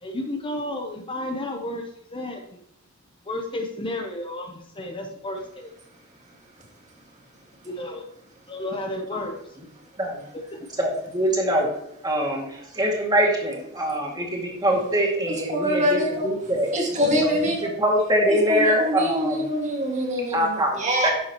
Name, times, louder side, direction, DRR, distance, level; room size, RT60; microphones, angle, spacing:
voice 1, 0.0-2.6 3.3-5.7 7.6-8.0 8.5-9.4 10.3-10.6, left 1 dB, 25° left, 3 dB, 0.8 m, -32 dB
voice 2, 10.8-11.7 12.0-16.7 17.3-19.5 20.3-21.1, equal, 20° right, -1 dB, 2.2 m, -23 dB
voice 3, 15.3-16.3 16.7-17.7 18.3-21.1, equal, 35° right, 0 dB, 1.9 m, -25 dB
11.0 x 6.8 x 3.0 m, 0.78 s
head